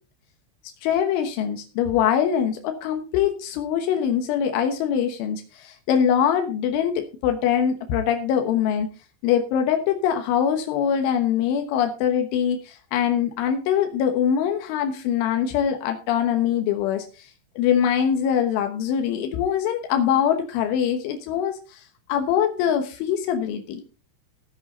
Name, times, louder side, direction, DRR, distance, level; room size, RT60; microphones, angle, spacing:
voice 1, 0.8-8.9 9.2-17.3 17.6-21.8 22.1-23.8, left 8 dB, 85° left, 5 dB, 3.7 m, -23 dB
15.0 x 8.6 x 4.2 m, 0.33 s
omnidirectional pair, 5.4 m